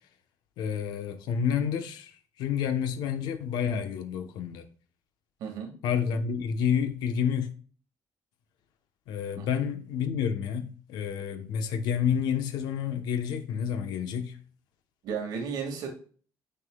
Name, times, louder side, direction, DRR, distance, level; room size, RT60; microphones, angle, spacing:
voice 1, 0.6-2.1 2.4-4.7 5.8-7.5 9.1-14.4, left 7 dB, 85° left, 1.0 m, -29 dB
voice 2, 5.4-5.7 9.4-9.5 15.0-15.9, right 6 dB, 70° right, 2.0 m, -33 dB
10.0 x 5.6 x 2.3 m
cardioid pair, 180°, 7 cm